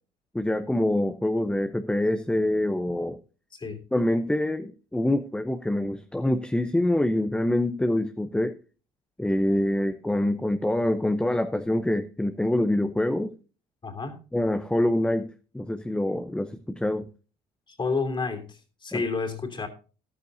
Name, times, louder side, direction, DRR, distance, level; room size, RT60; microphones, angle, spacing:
voice 1, 0.3-3.2 3.9-8.6 9.2-13.3 14.3-15.3 15.5-17.1, left 1 dB, 5° left, 0.7 m, -25 dB
voice 2, 13.8-14.2 17.7-19.7, left 4 dB, 30° left, 3.0 m, -30 dB
13.5 x 12.5 x 2.7 m
cardioid pair, 110°, 17 cm